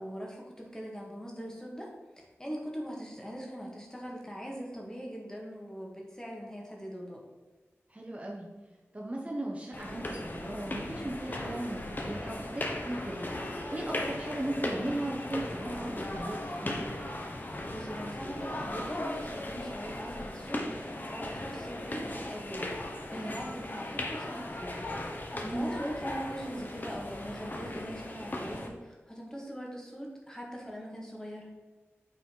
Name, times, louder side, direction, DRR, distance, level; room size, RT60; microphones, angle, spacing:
voice 1, 0.0-7.2 17.7-22.7 23.1-24.9 25.5-31.5, equal, 15° left, -1 dB, 1.9 m, -41 dB
voice 2, 7.9-8.5 8.9-13.3 13.7-16.9 23.1-23.4 25.3-25.8, right 1 dB, 30° right, -1 dB, 1.1 m, -37 dB
sound 1, 9.7-28.7, left 1 dB, 40° left, 1.1 m, -37 dB
8.7 x 4.2 x 4.6 m, 1.3 s
wide cardioid pair, 80°, 5 cm